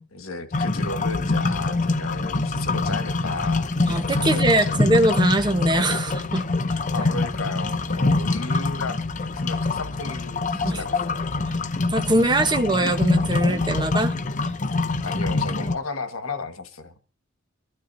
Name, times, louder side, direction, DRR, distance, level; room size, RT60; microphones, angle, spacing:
voice 1, 0.1-3.7 4.2-4.9 6.9-9.0 9.3-11.4 14.6-14.8 15.0-16.9, left 3 dB, 85° left, 1.5 m, -33 dB
sound 1, 0.5-15.7, left 3 dB, 40° left, 0.7 m, -25 dB
voice 2, 3.9-6.5 10.6-10.8 11.9-14.1, right 1 dB, 20° right, 1.1 m, -22 dB
24.0 x 12.5 x 2.7 m
head